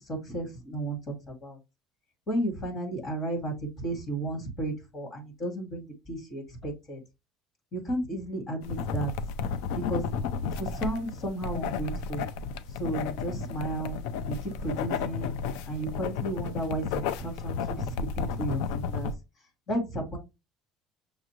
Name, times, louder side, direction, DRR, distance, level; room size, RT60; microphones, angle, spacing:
voice 1, 0.1-1.6 2.3-7.0 7.7-9.1 9.7-10.0 10.5-12.2 12.8-14.0 14.3-15.4 15.7-16.9 17.1-19.1 19.7-20.2, right 1 dB, 30° left, 1 dB, 1.9 m, -33 dB
sound 1, 8.6-19.1, left 6 dB, 90° left, 0.5 m, -33 dB
6.4 x 2.5 x 3.0 m, 0.24 s
cardioid pair, 160°, 0 cm